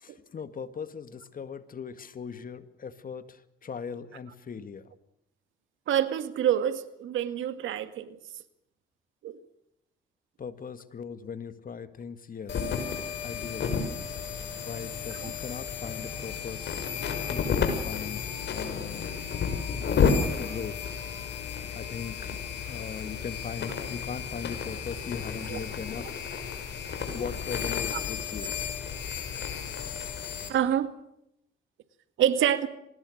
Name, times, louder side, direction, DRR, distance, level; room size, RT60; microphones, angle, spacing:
voice 1, 0.0-3.4 3.6-4.8 10.4-12.6 13.2-13.9 14.6-16.7 17.3-18.2 18.5-19.1 19.9-20.9 21.7-22.3 22.7-26.2 27.1-28.5, left 6 dB, 45° left, 12 dB, 2.0 m, -39 dB
voice 2, 5.9-8.2 9.2-9.4 15.1-15.3 25.5-25.6 27.9-28.0 30.5-30.9 32.2-32.7, right 10 dB, 80° right, 11 dB, 2.0 m, -27 dB
sound 1, 12.5-30.5, left 6 dB, 60° left, 6.2 m, -32 dB
25.0 x 20.0 x 6.6 m, 0.80 s
cardioid pair, 90°, 20 cm